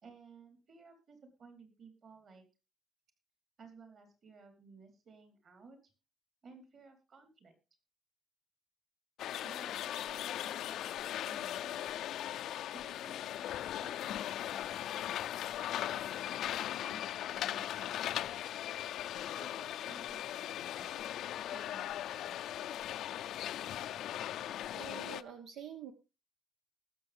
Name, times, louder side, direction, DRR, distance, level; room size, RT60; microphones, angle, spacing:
voice 1, 0.0-2.4 3.6-5.9 6.4-7.5 9.4-10.9 11.3-11.8 12.7-13.5 13.8-15.1 15.9-18.4 19.4-22.4, right 4 dB, 50° right, 6 dB, 4.0 m, -57 dB
sound 1, 9.2-25.2, left 12 dB, 75° left, 0.5 m, -39 dB
voice 2, 24.7-25.9, right 8 dB, 90° right, 6 dB, 1.3 m, -46 dB
20.0 x 7.0 x 3.5 m, 0.30 s
cardioid pair, 145°, 0 cm